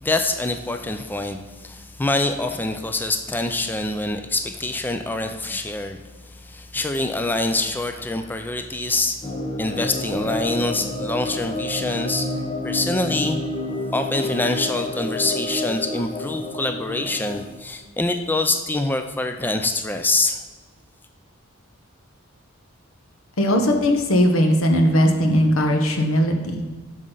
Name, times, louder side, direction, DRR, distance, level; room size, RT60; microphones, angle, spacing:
voice 1, 0.0-6.0 6.3-9.2 9.6-12.3 12.6-13.4 13.9-20.4, left 2 dB, 10° left, 6 dB, 0.3 m, -25 dB
sound 1, 9.2-17.4, left 1 dB, 30° left, 0.7 m, -29 dB
voice 2, 23.4-26.6, equal, 85° left, 4 dB, 1.0 m, -18 dB
8.0 x 6.3 x 3.9 m, 1.4 s
head